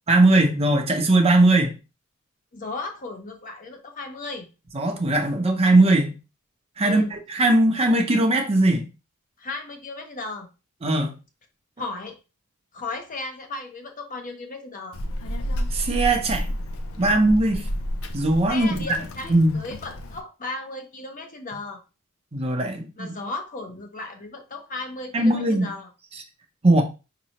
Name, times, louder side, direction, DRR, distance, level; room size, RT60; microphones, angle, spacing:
voice 1, 0.1-1.7 4.7-6.1 6.8-8.8 10.8-11.1 15.7-16.5 17.0-17.6 18.1-18.8 19.3-19.6 22.3-23.2 25.1-25.7 26.6-26.8, right 2 dB, 30° right, 0.7 m, -19 dB
voice 2, 2.5-4.5 6.8-7.1 9.4-10.5 11.8-12.2 12.7-15.0 18.5-21.8 23.0-25.9, left 3 dB, 35° left, 0.8 m, -35 dB
Child speech kid speaking, 14.9-20.2, equal, 70° left, 0.6 m, -31 dB
5.3 x 2.9 x 2.9 m
head